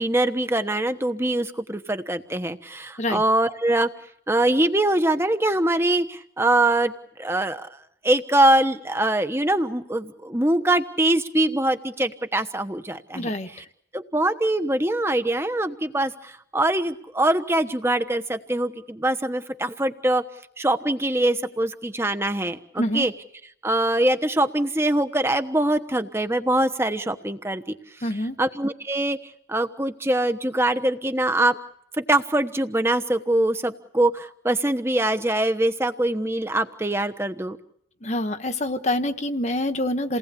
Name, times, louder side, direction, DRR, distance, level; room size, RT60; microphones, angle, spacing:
voice 1, 0.0-3.9 4.3-6.9 7.2-7.7 8.0-13.3 13.9-20.2 20.6-23.1 23.6-27.7 28.4-29.2 29.5-31.6 32.0-37.6, right 1 dB, 15° right, 9 dB, 1.2 m, -23 dB
voice 2, 13.1-13.5 22.8-23.1 28.0-28.4 38.0-40.2, left 1 dB, 40° left, 7 dB, 1.4 m, -26 dB
29.0 x 19.0 x 8.5 m, 0.72 s
head